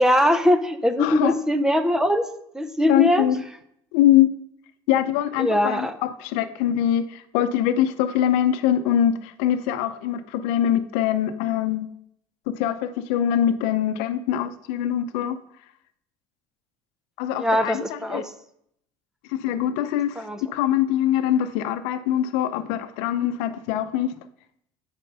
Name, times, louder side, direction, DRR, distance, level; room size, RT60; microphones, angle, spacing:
voice 1, 0.0-2.3 2.5-3.3 5.4-6.0 17.3-18.3 20.2-20.4, equal, 5° right, 0.5 m, -21 dB
voice 2, 1.0-1.3 2.9-3.4 3.9-4.3 4.9-11.9 12.5-15.4 17.2-18.2 19.3-20.3 20.5-24.1, left 11 dB, 85° left, 0.6 m, -23 dB
11.0 x 4.5 x 5.4 m
cardioid pair, 150°, 9 cm